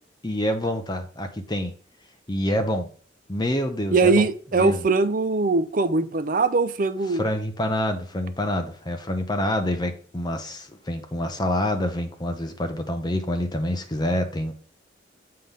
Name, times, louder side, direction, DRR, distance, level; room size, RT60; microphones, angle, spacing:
voice 1, 0.2-1.7 2.3-2.9 3.3-4.3 4.6-4.8 7.1-14.5, left 1 dB, 20° left, 0.7 m, -27 dB
voice 2, 3.9-7.2, right 3 dB, 45° right, 0.5 m, -21 dB
7.7 x 3.5 x 5.5 m
head